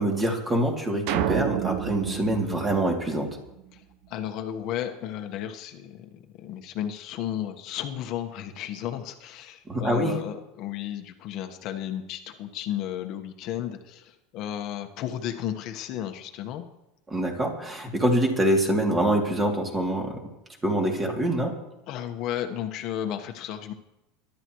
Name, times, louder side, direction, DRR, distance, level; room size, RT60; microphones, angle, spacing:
voice 1, 0.0-3.4 9.7-10.1 17.1-20.2 20.6-21.5, right 1 dB, 15° right, 1 dB, 2.8 m, -25 dB
sound 1, 1.1-3.6, right 10 dB, 60° right, 0.8 m, -29 dB
voice 2, 3.7-16.6 21.9-23.7, left 10 dB, 50° left, 5 dB, 1.3 m, -33 dB
22.5 x 12.0 x 3.2 m, 0.89 s
supercardioid pair, 140°, 0 cm